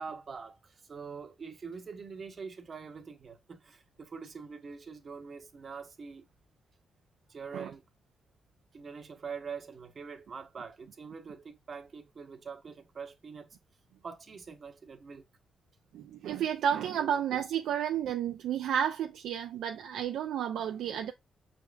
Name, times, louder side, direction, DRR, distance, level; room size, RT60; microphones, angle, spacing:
voice 1, 0.0-6.3 7.3-7.8 8.7-13.5 14.0-15.2 17.0-17.1, right 5 dB, 45° right, 0.8 m, -44 dB
voice 2, 15.9-21.1, right 9 dB, 90° right, 0.4 m, -31 dB
5.5 x 3.5 x 2.4 m
cardioid pair, 100°, 0 cm